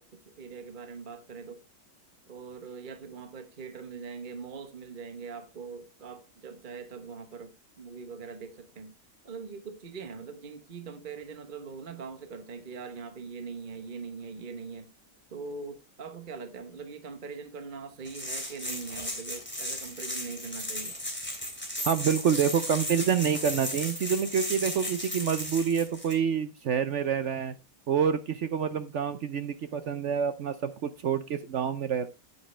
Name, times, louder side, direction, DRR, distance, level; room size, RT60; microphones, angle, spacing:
voice 1, 0.0-1.6 2.3-8.9 9.2-14.9 15.3-21.0, right 5 dB, 35° right, 1.0 m, -42 dB
sound 1, 18.1-26.1, left 1 dB, 5° left, 3.0 m, -35 dB
voice 2, 21.8-27.5 27.9-32.1, right 7 dB, 65° right, 0.7 m, -27 dB
9.7 x 9.6 x 3.2 m
omnidirectional pair, 1.9 m